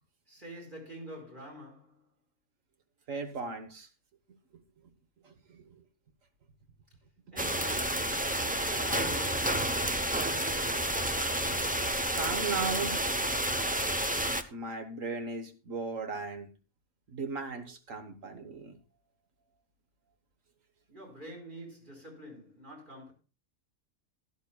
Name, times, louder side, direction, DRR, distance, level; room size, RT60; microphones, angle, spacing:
voice 1, 0.3-2.0 7.3-9.8 20.9-23.1, right 1 dB, 35° right, 4.8 m, -47 dB
voice 2, 3.1-3.9 4.5-4.6 5.2-5.9 12.1-13.0 14.5-16.5 17.1-18.8, right 4 dB, 65° right, 1.6 m, -37 dB
sound 1, 7.4-14.4, right 1 dB, 15° right, 0.3 m, -30 dB
16.5 x 11.0 x 2.3 m
omnidirectional pair, 1.5 m